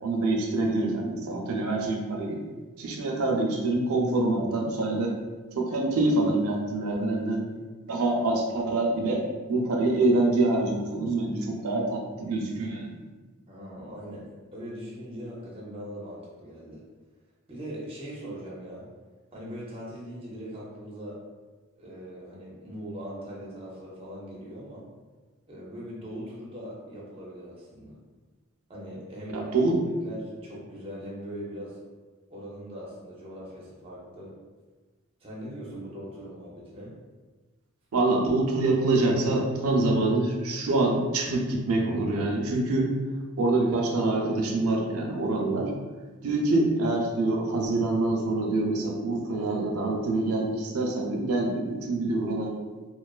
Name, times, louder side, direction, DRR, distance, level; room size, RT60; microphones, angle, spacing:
voice 1, 0.0-2.4 2.8-5.1 5.5-7.4 7.9-13.0 29.3-29.8 37.9-42.9 43.4-45.7 46.2-52.5, right 2 dB, 80° right, 0 dB, 0.5 m, -25 dB
voice 2, 13.5-16.8 17.5-18.9 19.3-21.2 21.8-24.8 25.5-28.0 28.7-29.7 30.0-31.8 32.3-34.3 35.2-36.9, equal, 25° right, -5 dB, 0.5 m, -40 dB
2.4 x 2.3 x 2.3 m, 1.3 s
head